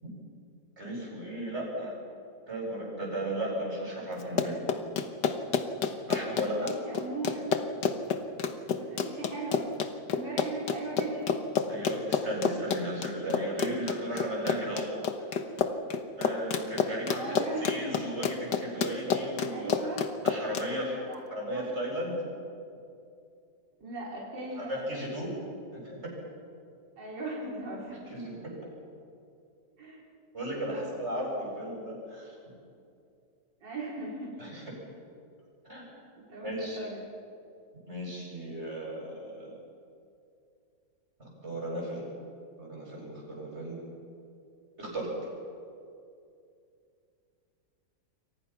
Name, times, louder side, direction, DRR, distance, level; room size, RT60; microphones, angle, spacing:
voice 1, 0.8-1.9 2.5-4.6 6.1-6.7 11.7-14.9 15.2-15.4 16.2-19.9 20.2-21.0 21.3-22.2 24.6-25.3 25.7-26.1 27.9-28.5 30.3-32.3 34.4-34.7 35.6-35.9 36.4-36.8 37.9-39.6 41.2-42.0 42.6-43.9 44.8-45.1, right 1 dB, 35° right, -3 dB, 8.2 m, -35 dB
Run, 4.2-20.7, left 6 dB, 75° left, 1.9 m, -29 dB
voice 2, 6.4-7.5 8.8-9.6 10.1-11.3 17.1-17.9 19.5-20.0 20.7-21.2 21.5-21.6 23.8-24.8 27.0-28.1 29.8-30.0 30.7-30.9 33.6-34.4 36.2-37.0, right 2 dB, 80° right, -5 dB, 5.1 m, -38 dB
29.0 x 24.0 x 6.0 m, 2.5 s
omnidirectional pair, 1.9 m